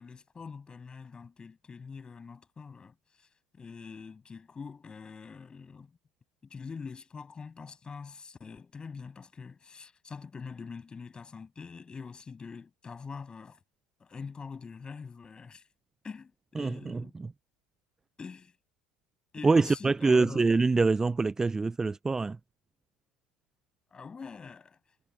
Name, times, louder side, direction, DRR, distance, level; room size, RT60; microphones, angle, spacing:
voice 1, 0.0-3.3 3.5-6.0 6.4-13.6 14.0-15.6 16.0-17.2 18.2-18.5 19.3-20.4 23.9-24.8, left 5 dB, 25° left, 7.9 m, -44 dB
voice 2, 16.6-17.0 19.4-22.4, right 3 dB, 15° right, 0.5 m, -25 dB
hypercardioid pair, 85°, 3 cm